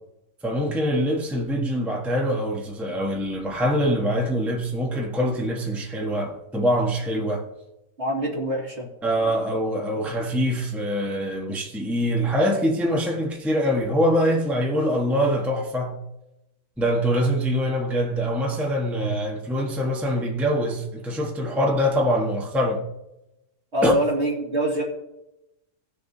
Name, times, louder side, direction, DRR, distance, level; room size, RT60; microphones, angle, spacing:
voice 1, 0.4-7.5 9.0-16.0 16.8-22.8 23.8-23.9, equal, ahead, 1.1 m, -24 dB
voice 2, 8.0-8.9 23.7-24.8, right 1 dB, 45° right, 2.5 m, -24 dB
18.0 x 6.8 x 2.7 m
omnidirectional pair, 1.6 m